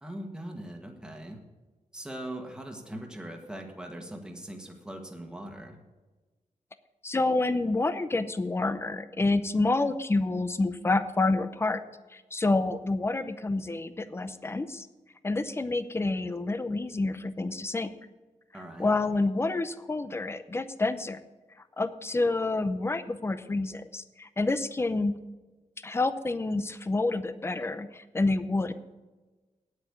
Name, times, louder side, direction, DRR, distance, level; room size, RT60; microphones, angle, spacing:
voice 1, 0.0-1.4 1.9-5.8 18.5-18.9, right 1 dB, 5° right, 3 dB, 1.5 m, -41 dB
voice 2, 7.0-11.8 12.1-14.9 15.2-17.9 18.8-21.2 21.8-25.1 25.8-28.7, left 2 dB, 20° left, 12 dB, 0.6 m, -28 dB
9.2 x 8.3 x 8.1 m, 1.2 s
wide cardioid pair, 140°, 13 cm